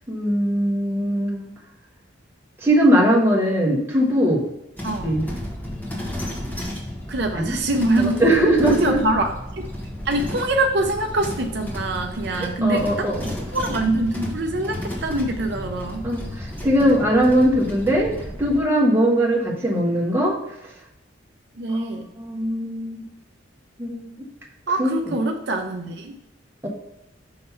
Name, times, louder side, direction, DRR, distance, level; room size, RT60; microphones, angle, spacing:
voice 1, 0.1-1.5 2.6-4.4 5.0-5.3 7.3-7.5 8.0-9.0 12.3-13.3 16.0-18.1 18.4-20.4 22.2-23.0 23.8-24.1 24.8-24.9 26.6-26.7, equal, 15° right, -3 dB, 1.2 m, -20 dB
sound 1, 4.8-18.6, left 1 dB, 10° left, 1.3 m, -33 dB
voice 2, 7.1-8.3 8.6-9.7 10.1-13.1 13.5-16.0 21.6-22.1 24.7-26.1, right 2 dB, 60° right, 4 dB, 0.6 m, -24 dB
5.7 x 3.3 x 5.5 m, 0.86 s
head